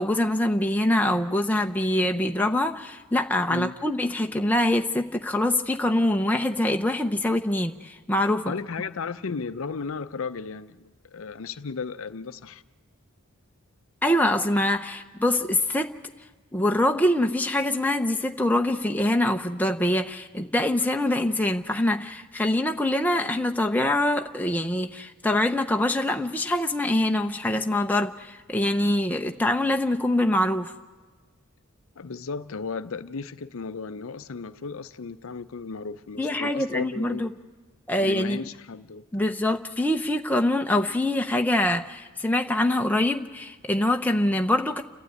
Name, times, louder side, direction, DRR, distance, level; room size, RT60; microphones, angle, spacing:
voice 1, 0.0-8.5 14.0-15.9 16.5-30.7 36.2-37.3 37.9-38.5 39.1-44.8, left 1 dB, 10° left, 4 dB, 0.7 m, -24 dB
voice 2, 8.4-12.6 32.0-37.2 37.9-39.3, left 5 dB, 70° left, 13 dB, 0.6 m, -35 dB
29.5 x 12.5 x 9.3 m, 1.3 s
head